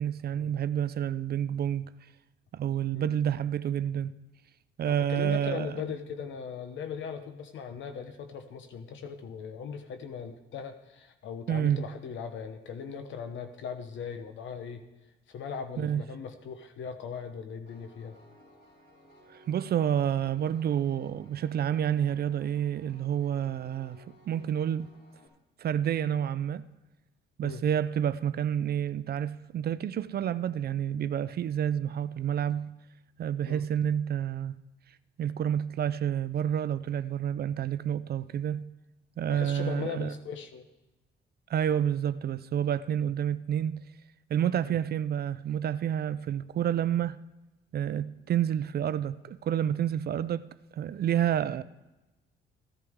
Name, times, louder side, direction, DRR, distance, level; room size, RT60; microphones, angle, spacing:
voice 1, 0.0-1.9 2.5-4.1 4.8-5.8 11.5-11.8 15.8-16.0 19.3-24.9 25.6-26.7 27.4-32.7 33.2-34.5 35.2-38.7 39.2-40.1 41.5-43.8 44.3-47.2 47.7-51.6, right 9 dB, 50° right, 0.5 m, -29 dB
voice 2, 4.9-14.8 15.3-18.2 27.4-27.6 33.4-33.6 39.3-40.6 44.6-44.8, left 6 dB, 70° left, 1.0 m, -39 dB
Piano, 17.7-25.3, left 1 dB, 55° left, 5.1 m, -58 dB
15.0 x 11.0 x 3.6 m
cardioid pair, 90°, 20 cm